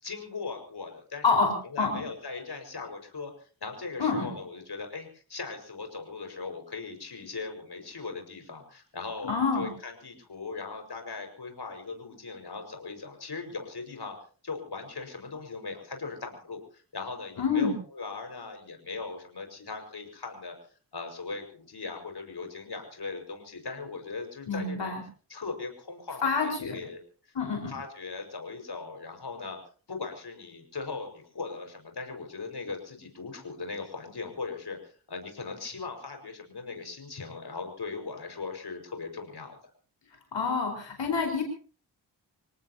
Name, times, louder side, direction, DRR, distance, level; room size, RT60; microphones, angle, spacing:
voice 1, 0.0-1.2 1.6-3.3 3.6-14.2 14.4-20.6 20.9-24.9 25.3-27.0 27.3-27.4 27.7-29.6 29.9-39.6, left 4 dB, 65° left, 4 dB, 5.5 m, -39 dB
voice 2, 9.2-9.7 17.4-17.7 24.5-25.0 26.2-26.7 27.3-27.7 40.3-41.4, left 4 dB, 85° left, 2 dB, 4.9 m, -27 dB
27.5 x 18.5 x 2.9 m, 0.39 s
cardioid pair, 60°, 42 cm